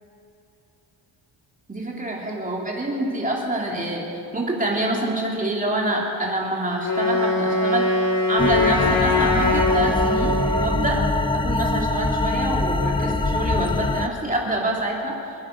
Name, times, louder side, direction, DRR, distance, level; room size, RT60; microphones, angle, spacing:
voice 1, 1.7-11.0 11.3-15.4, right 1 dB, 15° right, -2 dB, 3.1 m, -26 dB
Wind instrument woodwind instrument, 6.8-10.8, left 2 dB, 45° left, 2.6 m, -22 dB
sound 1, 8.4-14.1, left 2 dB, 10° left, 0.5 m, -23 dB
26.5 x 10.5 x 5.3 m, 3.0 s
wide cardioid pair, 135°, 46 cm